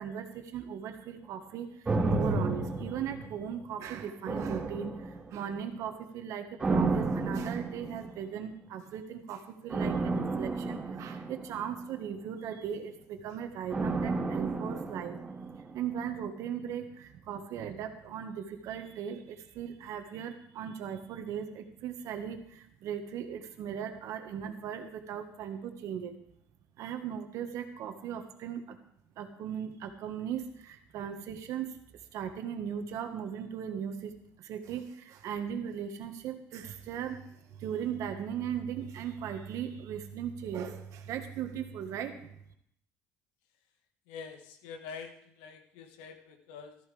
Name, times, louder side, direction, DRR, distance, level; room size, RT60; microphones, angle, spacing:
voice 1, 0.0-15.2 15.7-26.1 26.8-28.8 29.2-31.8 32.1-34.1 34.4-42.3, right 8 dB, 65° right, 6 dB, 1.6 m, -38 dB
sound 1, 1.9-3.8 4.3-5.5 6.6-8.3 9.7-12.1 13.7-15.9 16.2-16.3, right 3 dB, 20° right, 2.6 m, -32 dB
voice 2, 44.1-46.8, left 6 dB, 90° left, 6 dB, 1.6 m, -46 dB
14.0 x 14.0 x 3.4 m, 0.70 s
supercardioid pair, 90°, 6 cm